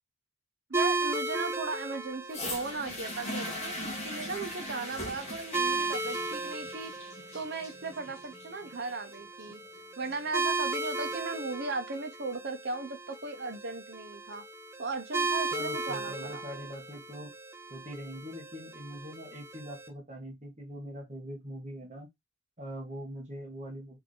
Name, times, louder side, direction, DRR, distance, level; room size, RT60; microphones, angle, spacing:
sound 1, 0.7-19.9, right 3 dB, 15° right, 0.5 m, -36 dB
voice 1, 0.7-6.9 7.3-9.6 10.0-14.4 14.8-16.4, right 3 dB, 50° right, 0.9 m, -37 dB
sound 2, 2.3-10.3 11.1-11.2, left 1 dB, 30° left, 1.5 m, -40 dB
voice 2, 15.5-17.3 17.7-22.1 22.6-24.0, equal, 35° right, 1.3 m, -42 dB
3.5 x 3.5 x 3.8 m
head